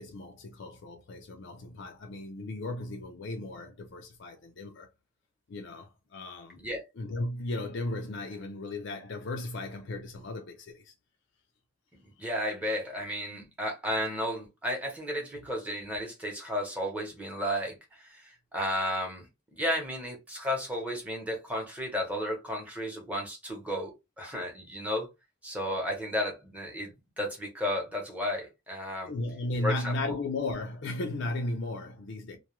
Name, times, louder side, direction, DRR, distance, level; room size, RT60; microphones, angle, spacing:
voice 1, 0.0-4.9 5.5-6.7 6.9-10.9 12.2-12.3 13.3-13.5 29.0-32.4, left 2 dB, 60° left, 0.4 m, -35 dB
voice 2, 12.2-17.7 18.1-18.2 18.5-19.2 19.5-25.1 25.4-29.1 29.6-29.9, equal, 5° right, 0.8 m, -33 dB
2.2 x 2.2 x 2.9 m
head